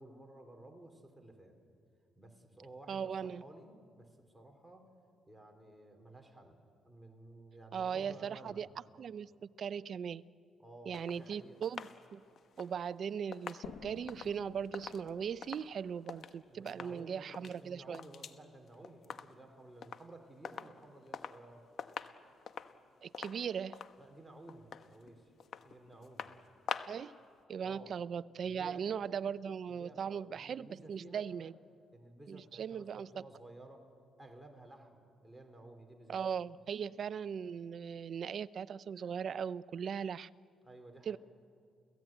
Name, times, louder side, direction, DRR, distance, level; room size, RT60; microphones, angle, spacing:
voice 1, 0.0-1.5 2.2-4.9 5.3-6.6 6.8-8.7 10.6-11.6 16.5-21.6 24.0-25.3 25.6-26.3 27.6-28.0 28.4-29.1 29.7-31.5 31.9-33.9 34.2-36.2 40.6-41.2, right 2 dB, 5° right, 3 dB, 3.7 m, -54 dB
voice 2, 2.9-3.4 7.7-8.7 8.9-10.2 10.9-11.8 12.1-12.2 12.6-18.0 23.0-23.8 26.9-27.1 27.5-31.5 32.3-33.2 36.1-40.3 41.0-41.2, right 7 dB, 55° right, 17 dB, 0.5 m, -39 dB
sound 1, 10.9-16.4 16.7-17.0 17.3-18.4 18.7-19.5 19.8-20.1 20.4-21.5 21.8-27.1 27.4-27.5, left 7 dB, 60° left, 1.0 m, -46 dB
sound 2, 13.6-17.1, left 7 dB, 80° left, 1.1 m, -53 dB
29.5 x 16.5 x 9.0 m, 2.3 s
cardioid pair, 90°, 0 cm